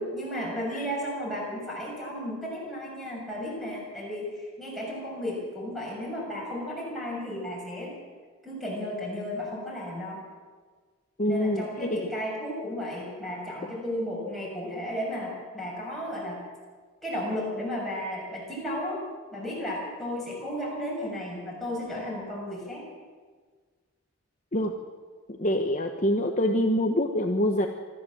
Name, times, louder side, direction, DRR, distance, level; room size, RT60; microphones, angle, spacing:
voice 1, 0.0-7.9 8.4-10.2 11.2-16.4 17.0-19.0 19.3-22.9, equal, ahead, -5 dB, 6.5 m, -34 dB
voice 2, 11.2-11.9 24.5-24.7 25.4-27.7, left 1 dB, 35° left, 3 dB, 1.0 m, -25 dB
25.0 x 13.5 x 7.7 m, 1.5 s
head